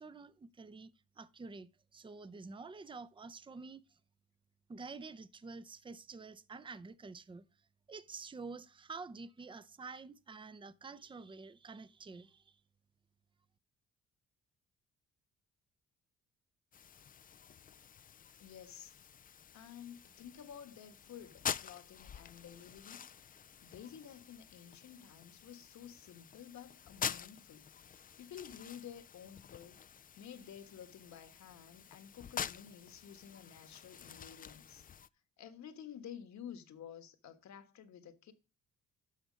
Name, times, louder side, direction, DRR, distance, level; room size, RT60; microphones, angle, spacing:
voice 1, 0.0-4.0 4.7-7.5 7.9-12.6, right 4 dB, 15° right, 0.6 m, -49 dB
sound 1, 16.7-35.1, left 8 dB, 30° left, 0.4 m, -47 dB
voice 2, 18.4-18.9 19.5-23.0 23.6-29.8 30.2-34.8 35.4-38.3, left 9 dB, 65° left, 1.4 m, -52 dB
12.5 x 4.4 x 5.1 m
cardioid pair, 90°, 30 cm